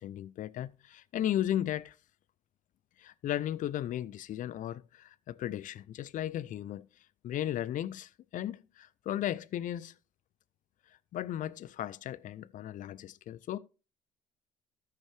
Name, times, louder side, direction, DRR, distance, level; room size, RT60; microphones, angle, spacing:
voice 1, 0.0-1.9 3.0-6.8 7.2-9.9 11.1-13.6, left 12 dB, 55° left, 0.5 m, -35 dB
13.5 x 5.7 x 3.4 m
hypercardioid pair, 55°, 16 cm